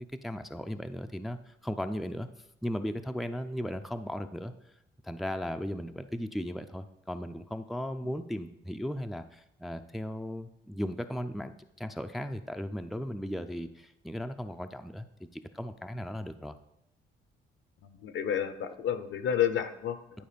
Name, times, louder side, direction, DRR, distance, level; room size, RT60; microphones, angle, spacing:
voice 1, 0.0-2.3 2.6-4.5 5.0-11.5 11.8-15.1 15.5-16.6, equal, ahead, 7 dB, 0.4 m, -36 dB
voice 2, 17.8-20.2, left 9 dB, 70° left, 11 dB, 0.7 m, -31 dB
10.5 x 4.5 x 5.1 m, 0.81 s
cardioid pair, 90°, 20 cm